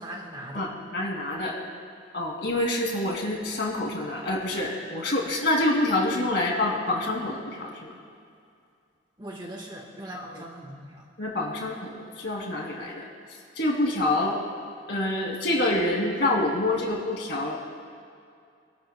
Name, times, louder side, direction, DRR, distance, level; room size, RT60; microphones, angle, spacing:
voice 1, 0.0-0.7 9.2-11.0, right 1 dB, 25° right, 0 dB, 1.4 m, -40 dB
voice 2, 0.5-1.6 2.1-7.9 10.1-10.2 11.2-13.0 13.6-14.4 14.9-17.6, left 1 dB, 55° left, -1 dB, 2.6 m, -27 dB
27.0 x 12.0 x 2.2 m, 2.4 s
head